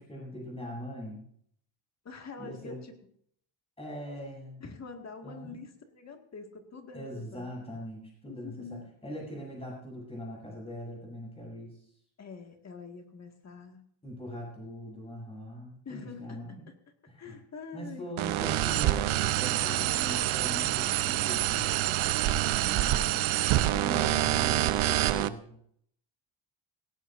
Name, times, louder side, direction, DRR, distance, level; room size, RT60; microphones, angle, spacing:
voice 1, 0.1-1.2 2.4-2.8 3.8-4.6 5.2-5.6 6.9-11.8 14.0-16.6 17.1-17.4 17.7-21.7 22.9-23.0 23.8-25.5, equal, 10° left, -2 dB, 7.8 m, -41 dB
voice 2, 2.0-3.0 4.6-7.5 8.3-9.1 12.2-13.8 15.9-16.7 17.2-18.8 19.6-20.5 22.6-24.0, left 4 dB, 35° left, 4 dB, 2.0 m, -46 dB
sound 1, 18.2-25.3, right 14 dB, 75° right, 0.8 m, -27 dB
17.5 x 17.5 x 2.6 m, 0.65 s
cardioid pair, 150°, 48 cm